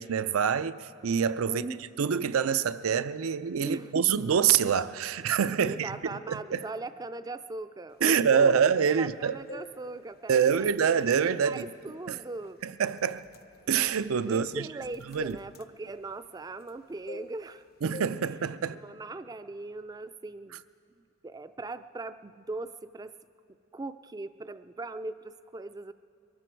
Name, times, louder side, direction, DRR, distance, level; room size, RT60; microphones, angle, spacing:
voice 1, 0.0-1.6 2.0-6.6 8.0-9.4 10.3-11.7 12.1-12.2 12.6-13.2 13.7-14.7 15.1-15.4 17.8-18.8, right 7 dB, 80° right, 0.5 m, -26 dB
voice 2, 1.5-2.1 3.6-4.0 5.6-12.6 14.2-17.6 18.7-20.6 21.0-23.1 23.7-25.9, right 2 dB, 20° right, 0.3 m, -40 dB
sound 1, 8.3-9.1 9.4-10.5 10.9-11.2 11.6-11.8 12.4-12.6 12.9-16.8 17.1-17.6 17.9-18.2 18.5-18.8, left 1 dB, 45° left, 0.6 m, -46 dB
23.0 x 14.0 x 4.5 m
head